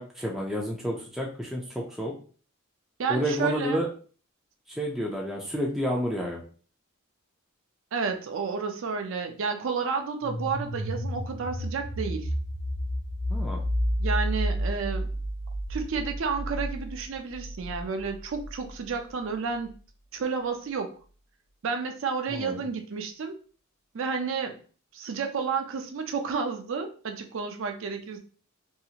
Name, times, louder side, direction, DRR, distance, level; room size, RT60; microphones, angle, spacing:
voice 1, 0.0-2.1 3.1-3.9 4.8-6.4 13.3-13.6 22.3-22.7, equal, ahead, -3 dB, 0.4 m, -30 dB
voice 2, 3.0-3.9 7.9-12.3 14.0-15.1 15.7-19.7 20.1-20.9 21.6-23.4 23.9-24.6 24.9-28.2, right 5 dB, 65° right, 5 dB, 0.4 m, -31 dB
sound 1, 10.2-18.9, equal, 70° left, 0.5 m, -31 dB
2.8 x 2.4 x 2.7 m, 0.40 s
head